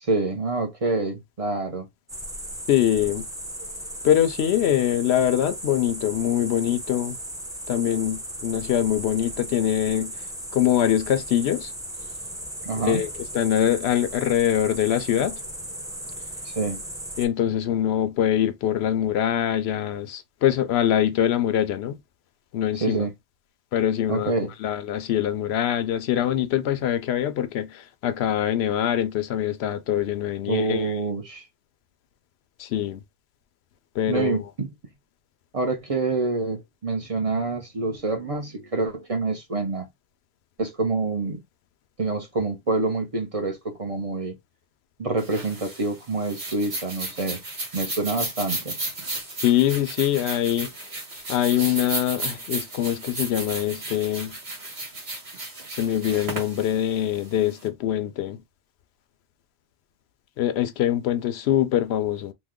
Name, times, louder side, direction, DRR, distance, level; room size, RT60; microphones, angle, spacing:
voice 1, 0.0-1.9 12.6-13.0 16.4-16.8 22.8-23.1 24.1-24.5 30.5-31.5 34.1-34.7 35.5-39.9 40.6-41.4 42.0-44.4 45.0-47.4 47.7-48.8, right 3 dB, 40° right, 0.7 m, -27 dB
sound 1, 2.1-17.3, right 1 dB, 5° right, 0.5 m, -36 dB
voice 2, 2.7-3.3 4.0-7.2 7.7-10.1 10.5-11.7 12.7-13.1 13.3-15.4 17.2-21.9 22.5-23.1 23.7-24.3 24.6-30.9 32.6-33.0 34.0-34.4 49.4-50.7 51.3-54.3 55.8-58.4 60.4-62.3, left 11 dB, 80° left, 0.8 m, -23 dB
sound 2, 45.2-57.6, right 2 dB, 80° right, 1.5 m, -34 dB
3.1 x 2.1 x 3.5 m
omnidirectional pair, 1.1 m